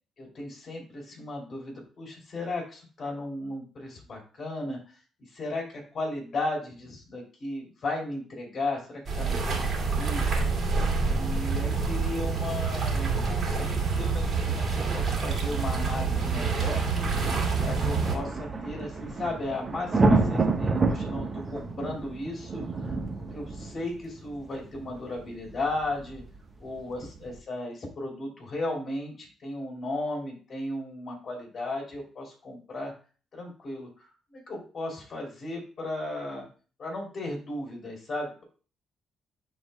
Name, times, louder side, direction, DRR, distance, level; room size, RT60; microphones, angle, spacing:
voice 1, 0.2-4.8 5.3-10.3 11.0-16.8 17.6-23.0 23.3-26.2 26.6-32.9 33.3-34.0 34.3-36.5 36.8-38.4, left 2 dB, 45° left, 0 dB, 3.0 m, -35 dB
sound 1, 9.1-18.2, right 4 dB, 50° right, 2.2 m, -27 dB
sound 2, 16.5-27.4, right 3 dB, 35° right, 1.1 m, -29 dB
11.0 x 3.9 x 2.2 m, 0.38 s
cardioid pair, 90°, 0 cm